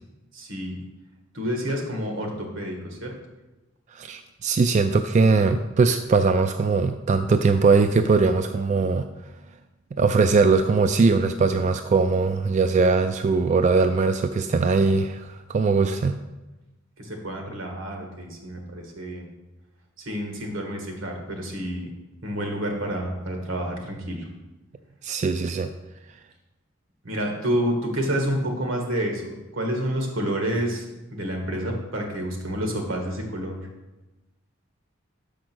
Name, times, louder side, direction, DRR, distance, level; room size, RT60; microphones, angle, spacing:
voice 1, 0.3-0.8 1.3-3.1 17.0-19.2 20.0-21.9 22.2-24.2 27.0-30.8 31.1-33.6, equal, 85° right, 2 dB, 1.7 m, -29 dB
voice 2, 3.9-9.1 9.9-16.2 25.0-25.7, right 4 dB, 35° right, 8 dB, 0.3 m, -21 dB
6.3 x 5.0 x 6.1 m, 1.1 s
head